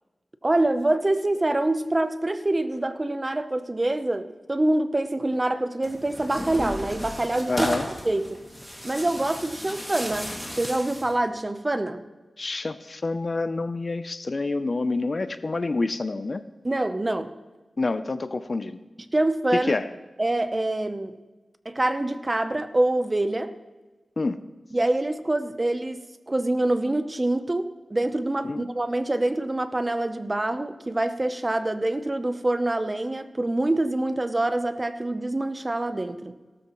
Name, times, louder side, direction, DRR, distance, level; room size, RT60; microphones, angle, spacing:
voice 1, 0.4-7.7 8.0-8.4 8.8-12.0 16.6-17.3 19.1-19.7 20.2-21.2 21.6-23.5 24.7-36.4, right 1 dB, 25° right, 10 dB, 0.8 m, -25 dB
Tearing, 5.8-11.2, equal, 5° right, 2.3 m, -34 dB
voice 2, 7.5-7.9 12.4-16.4 17.8-18.8 19.5-19.9 24.2-24.4 28.4-28.7, left 3 dB, 45° left, 12 dB, 0.6 m, -27 dB
17.5 x 13.0 x 3.1 m, 1.2 s
wide cardioid pair, 95°, 0 cm